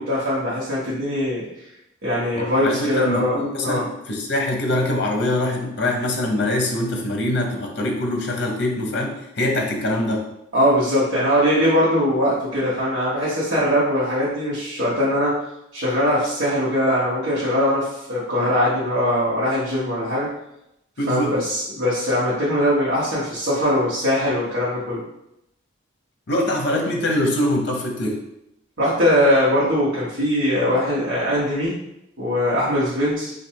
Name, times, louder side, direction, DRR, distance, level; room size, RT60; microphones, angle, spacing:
voice 1, 0.0-1.4 2.0-3.8 10.5-15.4 15.7-20.3 21.1-25.0 28.8-31.8 32.2-33.3, equal, 70° right, -9 dB, 1.1 m, -21 dB
voice 2, 2.3-10.3 21.0-21.4 26.3-28.2, left 1 dB, 55° left, 1 dB, 0.7 m, -23 dB
3.2 x 2.5 x 4.4 m, 0.82 s
head